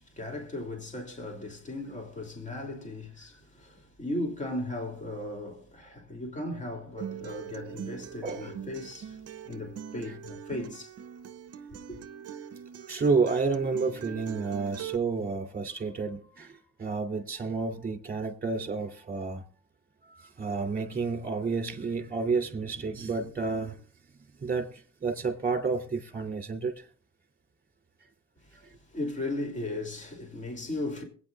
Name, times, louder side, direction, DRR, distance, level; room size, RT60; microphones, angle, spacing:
voice 1, 0.0-9.2 9.4-10.9 11.7-12.0 28.9-31.0, left 1 dB, 25° left, 2.8 m, -37 dB
Acoustic guitar, 7.0-15.0, right 9 dB, 55° right, 0.7 m, -42 dB
voice 2, 8.2-8.5 12.8-19.4 20.0-23.9 24.1-26.9 28.5-28.7, right 4 dB, 30° right, 2.8 m, -30 dB
22.5 x 9.1 x 2.4 m
cardioid pair, 90°, 30 cm